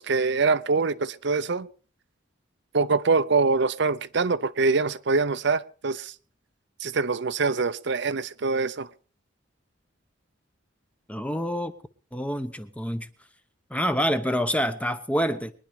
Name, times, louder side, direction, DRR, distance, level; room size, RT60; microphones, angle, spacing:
voice 1, 0.0-1.7 2.7-6.1 6.8-8.9, right 4 dB, 60° right, 0.7 m, -24 dB
voice 2, 11.1-11.7 12.1-13.1 13.7-15.5, equal, 5° left, 0.9 m, -27 dB
22.5 x 10.5 x 5.1 m
head